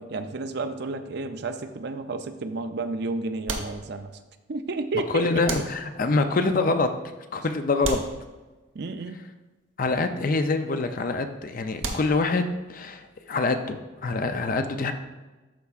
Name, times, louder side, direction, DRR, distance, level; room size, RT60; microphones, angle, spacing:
voice 1, 0.0-4.1 4.5-5.5 8.7-9.2, right 3 dB, 55° right, 8 dB, 0.5 m, -31 dB
sound 1, 1.6-2.2 3.5-4.4 5.5-6.3 7.8-8.9 11.8-12.6, right 3 dB, 70° right, 1.0 m, -35 dB
voice 2, 5.1-6.9 7.3-8.0 9.8-14.9, left 3 dB, 45° left, 7 dB, 0.5 m, -25 dB
12.5 x 4.6 x 2.4 m, 1.2 s
head